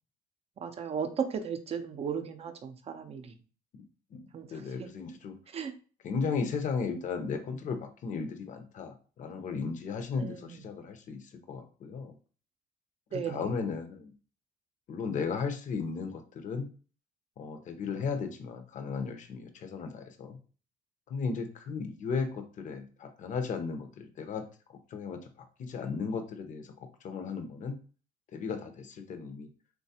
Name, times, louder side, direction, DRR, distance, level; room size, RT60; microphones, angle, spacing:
voice 1, 0.6-3.3 4.3-4.6 5.5-5.7 10.2-10.6 13.1-13.5, right 7 dB, 35° right, 8 dB, 0.5 m, -35 dB
voice 2, 4.5-5.4 6.0-11.2 11.5-12.1 13.1-14.1 14.9-16.7 17.4-20.4 21.1-24.4 24.9-25.2 25.6-26.7 27.0-27.8 28.3-29.5, left 5 dB, 50° left, 7 dB, 0.6 m, -35 dB
3.1 x 2.2 x 2.7 m, 0.37 s
cardioid pair, 110°, 17 cm